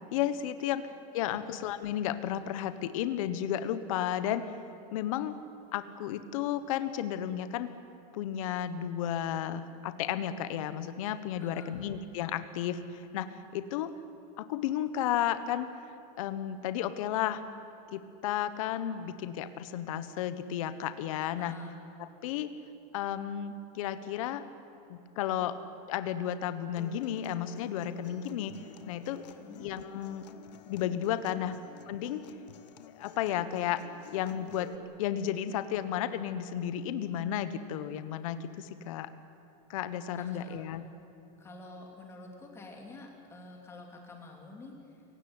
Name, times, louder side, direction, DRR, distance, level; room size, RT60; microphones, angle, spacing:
voice 1, 0.1-0.8 1.1-4.4 4.9-5.3 5.7-7.7 8.1-13.9 14.4-15.7 16.2-17.4 17.9-21.5 22.2-22.5 22.9-24.4 24.9-25.6 25.9-28.5 28.9-29.2 29.6-30.3 30.7-31.6 31.9-32.2 32.9-33.8 34.1-34.7 35.0-39.1 39.7-40.8, left 10 dB, 55° left, 12 dB, 1.3 m, -33 dB
voice 2, 11.4-11.9 21.4-21.8 29.3-29.7 40.1-40.7 41.4-45.0, left 2 dB, 10° left, 1 dB, 3.0 m, -48 dB
Acoustic guitar, 26.8-34.8, left 9 dB, 85° left, 1.5 m, -50 dB
28.5 x 17.0 x 9.8 m, 2.7 s
supercardioid pair, 175°, 21 cm